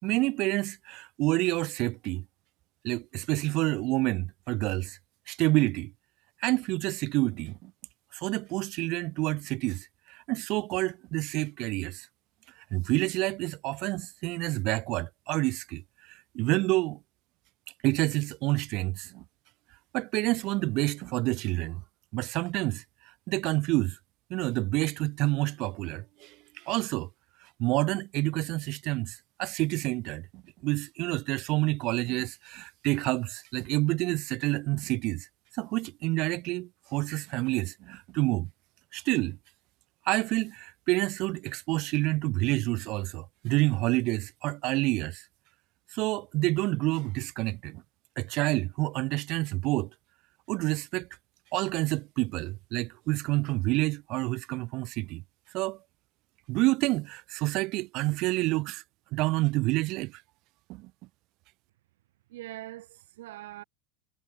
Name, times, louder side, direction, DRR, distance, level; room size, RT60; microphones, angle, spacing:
voice 1, 0.0-2.2 2.8-5.0 5.3-5.9 6.4-7.7 8.1-12.1 12.7-15.8 16.1-17.0 17.8-19.2 19.9-21.8 22.1-22.8 23.3-24.0 24.3-27.1 27.6-35.3 35.5-38.5 38.9-39.4 40.1-45.2 45.9-47.8 48.2-49.9 50.5-51.1 51.5-55.2 55.5-55.8 56.5-58.8 59.1-60.2 60.7-60.9, right 21 dB, 55° right, 7.1 m, -28 dB
voice 2, 62.3-63.6, right 16 dB, 90° right, 5.2 m, -42 dB
supercardioid pair, 130°, 0 cm